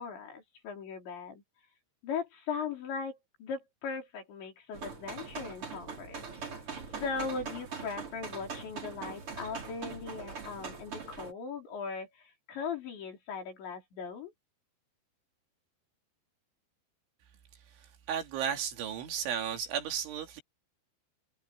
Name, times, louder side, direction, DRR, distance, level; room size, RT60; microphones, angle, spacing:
voice 1, 0.0-1.4 2.0-6.2 6.5-6.6 7.0-14.3, left 5 dB, 65° left, 7.3 m, -39 dB
sound 1, 4.7-11.3, right 5 dB, 30° right, 4.2 m, -42 dB
voice 2, 18.1-20.4, right 8 dB, 75° right, 4.9 m, -34 dB
omnidirectional pair, 5.6 m